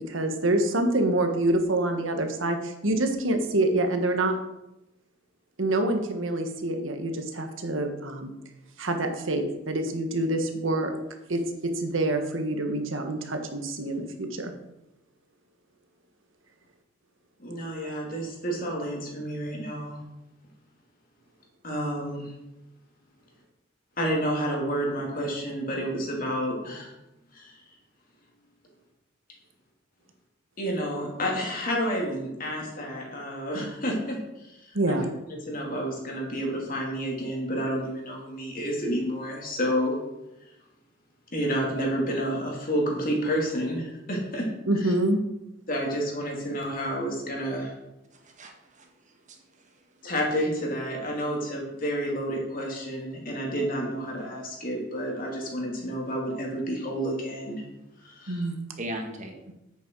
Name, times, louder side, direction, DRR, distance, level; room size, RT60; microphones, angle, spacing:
voice 1, 0.1-4.4 5.6-8.3 8.8-10.9 11.3-14.5 34.7-35.1 44.7-45.2 58.3-58.6, right 1 dB, 80° right, 5 dB, 1.4 m, -26 dB
voice 2, 17.4-20.0 21.6-22.3 24.0-26.9 27.3-27.5 30.6-40.0 41.3-44.5 44.8-44.9 45.7-47.7 50.0-57.6 58.0-58.5, equal, 45° left, -1 dB, 2.9 m, -30 dB
voice 3, 48.1-49.8 58.8-59.4, right 1 dB, 40° right, 2 dB, 1.6 m, -39 dB
9.9 x 8.2 x 4.7 m, 0.91 s
head